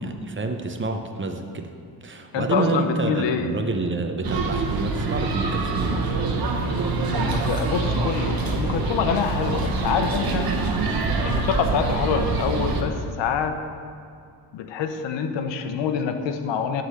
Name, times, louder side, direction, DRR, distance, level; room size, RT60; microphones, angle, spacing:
voice 1, 0.0-1.7 2.0-6.2, right 3 dB, 25° right, 5 dB, 0.8 m, -28 dB
voice 2, 2.3-3.6 7.1-10.5 11.2-13.6 14.5-16.8, left 6 dB, 80° left, 7 dB, 0.9 m, -26 dB
sound 1, 4.2-12.8, right 3 dB, 55° right, 1.3 m, -25 dB
11.0 x 3.9 x 7.7 m, 2.5 s
cardioid pair, 95°, 43 cm